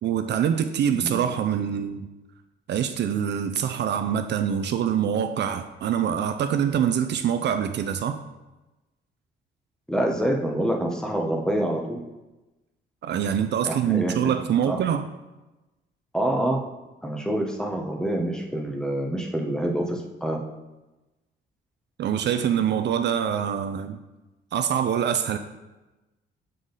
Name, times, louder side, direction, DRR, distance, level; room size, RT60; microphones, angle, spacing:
voice 1, 0.0-2.1 2.7-8.2 13.0-15.1 22.0-24.0 24.5-25.4, right 8 dB, 60° right, 8 dB, 0.5 m, -25 dB
voice 2, 9.9-12.0 13.6-14.3 14.7-14.8 16.1-16.6 17.0-20.4, right 1 dB, 5° left, 1 dB, 1.0 m, -26 dB
6.7 x 3.7 x 4.0 m, 1.1 s
cardioid pair, 90°, 20 cm